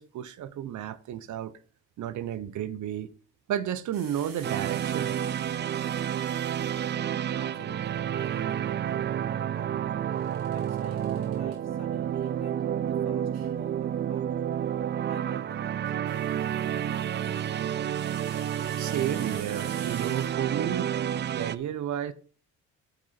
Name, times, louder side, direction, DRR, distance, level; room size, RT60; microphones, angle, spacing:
voice 1, 0.0-1.5 2.0-3.1 3.5-5.1 18.8-20.9 21.3-22.1, right 10 dB, 60° right, 0.9 m, -32 dB
sound 1, 3.9-7.2 10.1-11.6 13.3-13.5 15.6-20.8, right 5 dB, 85° right, 3.6 m, -48 dB
sound 2, 4.4-21.6, right 9 dB, 35° right, 0.4 m, -30 dB
voice 2, 6.9-10.0 10.5-14.7 15.1-18.0, left 3 dB, 50° left, 3.3 m, -52 dB
11.0 x 5.9 x 4.3 m
cardioid pair, 90°, 34 cm